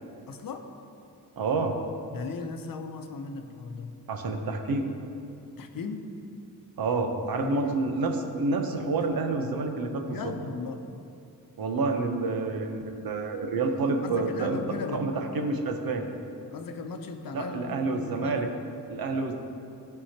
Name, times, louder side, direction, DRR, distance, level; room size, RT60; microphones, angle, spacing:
voice 1, 0.3-0.7 2.1-3.9 5.6-6.1 7.4-7.7 10.1-10.9 14.0-15.1 16.5-18.4, left 4 dB, 65° left, 6 dB, 0.8 m, -37 dB
voice 2, 1.4-1.8 4.1-4.9 6.8-10.3 11.6-14.6 14.9-16.1 17.3-18.5 18.9-19.3, right 3 dB, 70° right, 4 dB, 0.9 m, -28 dB
15.0 x 5.6 x 2.9 m, 2.7 s
cardioid pair, 100°, 37 cm